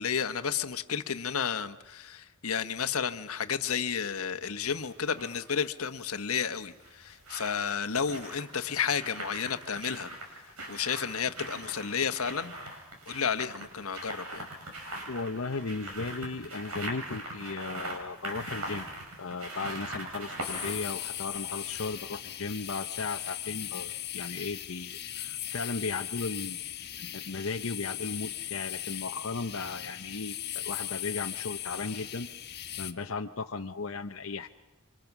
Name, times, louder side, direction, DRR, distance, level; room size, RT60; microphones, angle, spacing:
voice 1, 0.0-10.1 10.7-12.5 13.1-14.5, left 7 dB, 90° left, 1.3 m, -32 dB
sound 1, 4.6-5.4 6.6-22.1 22.5-22.6, right 1 dB, 85° right, 6.8 m, -41 dB
voice 2, 15.1-18.9 19.2-26.6 27.0-32.3 32.8-34.5, left 4 dB, 70° left, 0.9 m, -36 dB
sound 2, 20.4-32.9, left 12 dB, 50° left, 1.4 m, -38 dB
28.0 x 25.5 x 6.1 m
head